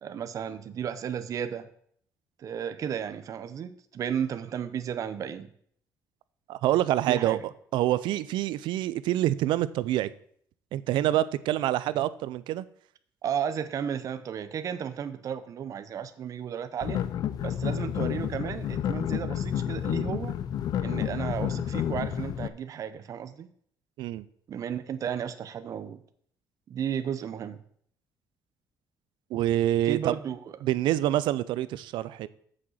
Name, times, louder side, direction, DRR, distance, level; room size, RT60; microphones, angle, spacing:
voice 1, 0.0-1.7 2.4-5.5 7.1-7.4 13.2-17.0 17.4-20.3 20.8-23.5 24.5-26.0 26.7-27.6 29.8-30.4, right 8 dB, 45° right, 11 dB, 0.7 m, -33 dB
voice 2, 6.5-7.4 7.7-10.1 10.7-12.7 24.0-24.3 29.3-30.2 30.6-32.3, right 13 dB, 90° right, 17 dB, 0.5 m, -26 dB
sound 1, 16.8-22.5, left 10 dB, 55° left, 0.5 m, -30 dB
7.5 x 6.4 x 7.3 m, 0.63 s
cardioid pair, 145°, 8 cm